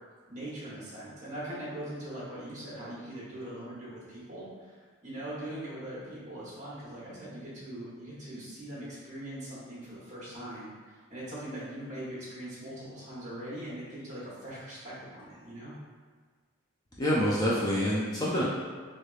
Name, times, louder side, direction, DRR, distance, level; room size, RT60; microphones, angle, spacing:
voice 1, 0.3-15.7, right 1 dB, 35° right, -8 dB, 1.1 m, -41 dB
voice 2, 17.0-18.4, equal, 15° left, -7 dB, 0.4 m, -26 dB
3.3 x 3.1 x 2.4 m, 1.5 s
head